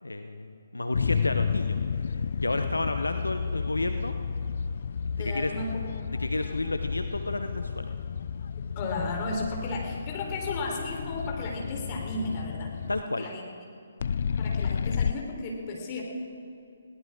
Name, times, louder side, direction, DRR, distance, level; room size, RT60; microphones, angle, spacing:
voice 1, 0.0-4.1 5.1-5.5 6.2-7.9 12.9-13.3, left 2 dB, 80° left, 7 dB, 0.8 m, -31 dB
sound 1, 0.9-13.0 14.0-15.1, left 6 dB, 55° left, 0.4 m, -31 dB
voice 2, 5.2-5.7 8.8-13.4 14.4-16.0, left 2 dB, 30° left, -1 dB, 3.9 m, -34 dB
21.5 x 17.5 x 3.8 m, 2.7 s
figure-of-eight pair, 135°, 0 cm